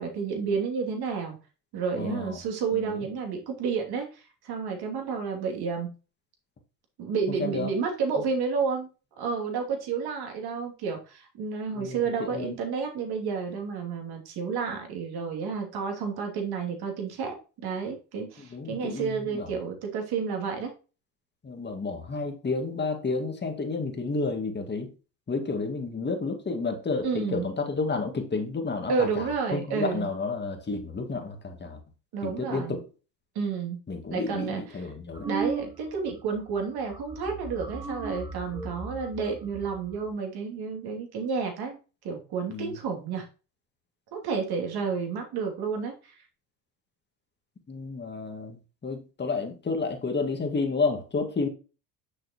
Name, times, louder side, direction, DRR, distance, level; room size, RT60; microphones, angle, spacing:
voice 1, 0.0-1.4 1.7-5.9 7.0-8.9 9.2-17.3 17.6-20.7 27.0-27.5 28.9-30.1 32.1-32.8 33.3-33.8 34.1-34.6 35.2-41.8 42.0-43.2 44.1-46.2, right 5 dB, 55° right, 2.8 m, -30 dB
voice 2, 1.9-2.4 2.7-3.1 7.3-7.7 11.7-12.6 18.4-19.5 21.4-24.9 25.3-31.8 32.2-32.9 33.9-35.3 42.5-42.8 47.7-51.5, left 4 dB, 20° left, 2.0 m, -31 dB
sound 1, 35.1-36.1 36.4-36.7 36.9-40.1, right 5 dB, 10° right, 0.9 m, -36 dB
6.8 x 6.3 x 3.0 m
hypercardioid pair, 85°, 47 cm